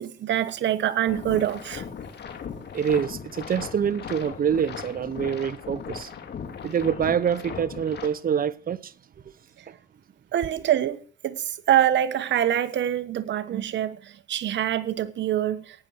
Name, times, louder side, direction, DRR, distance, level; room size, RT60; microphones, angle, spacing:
voice 1, 0.0-1.9 9.6-9.7 10.3-15.9, right 11 dB, 65° right, 1.2 m, -25 dB
sound 1, 1.1-8.1, left 7 dB, 55° left, 2.9 m, -38 dB
voice 2, 2.7-6.1 6.6-8.9 9.7-9.8, right 8 dB, 45° right, 0.9 m, -26 dB
17.5 x 9.4 x 6.4 m
cardioid pair, 90°, 20 cm